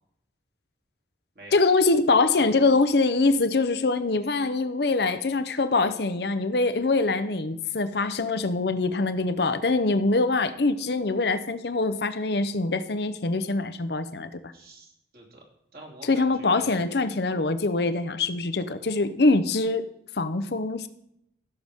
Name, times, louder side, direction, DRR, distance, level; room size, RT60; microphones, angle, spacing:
voice 1, 1.5-14.5 16.1-19.8 20.2-20.9, left 3 dB, 65° left, 11 dB, 0.7 m, -24 dB
voice 2, 14.5-15.4 15.7-16.8, right 1 dB, 50° right, -2 dB, 2.8 m, -47 dB
15.5 x 6.7 x 3.6 m, 0.77 s
head